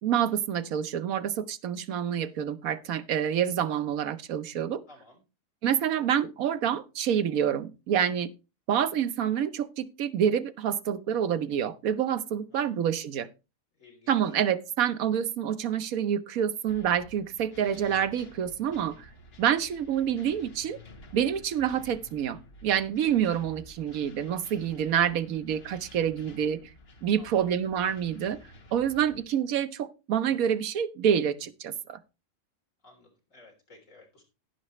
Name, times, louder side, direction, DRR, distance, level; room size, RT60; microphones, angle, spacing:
voice 1, 0.0-4.8 5.6-8.3 8.7-13.3 14.1-19.1 19.4-20.8 21.1-26.7 27.0-28.4 28.7-32.0, right 9 dB, 90° right, 1.3 m, -27 dB
voice 2, 4.9-5.2 12.5-12.9 13.8-14.3 27.2-27.4 32.8-34.2, left 2 dB, 65° left, 3.8 m, -55 dB
sound 1, 16.7-29.2, left 1 dB, 45° left, 1.6 m, -52 dB
11.0 x 11.0 x 3.1 m
omnidirectional pair, 1.4 m